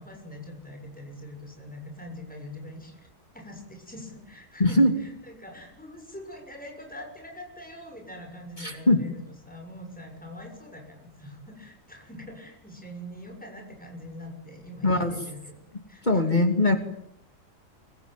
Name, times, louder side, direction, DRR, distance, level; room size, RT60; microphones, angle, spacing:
voice 1, 0.0-3.1 3.3-9.2 9.5-16.4, left 1 dB, 5° left, 2 dB, 6.9 m, -43 dB
voice 2, 4.6-4.9 8.6-9.0 14.8-15.1 16.0-16.8, left 1 dB, 35° left, 6 dB, 2.7 m, -21 dB
25.5 x 24.5 x 9.2 m, 0.73 s
omnidirectional pair, 1.4 m